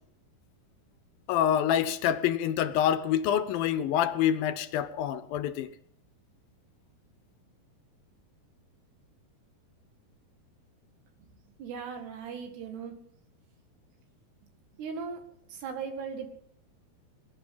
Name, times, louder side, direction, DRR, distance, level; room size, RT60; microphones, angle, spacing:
voice 1, 1.3-5.7, left 10 dB, 75° left, 2.4 m, -26 dB
voice 2, 11.6-12.9 14.8-15.2 15.5-16.3, right 6 dB, 80° right, 4.0 m, -38 dB
19.5 x 11.5 x 5.6 m
omnidirectional pair, 4.7 m